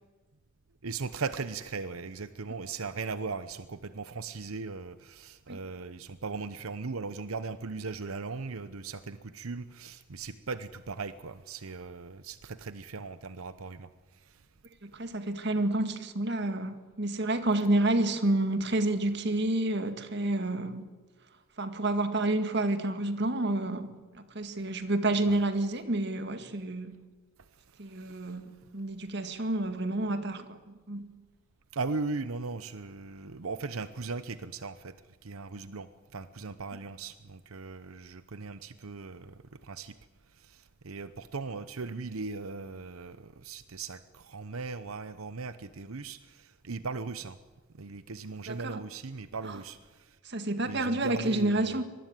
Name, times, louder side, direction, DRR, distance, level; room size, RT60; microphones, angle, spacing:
voice 1, 0.8-14.4 25.3-25.4 27.8-28.3 31.7-34.9 35.2-39.9 40.3-47.4 47.7-50.2 50.6-51.8, right 4 dB, 90° right, 0.9 m, -38 dB
voice 2, 14.8-20.9 21.6-26.9 27.8-31.1 48.5-48.8 50.3-51.8, right 2 dB, 55° right, 1.9 m, -29 dB
24.5 x 20.0 x 9.3 m
head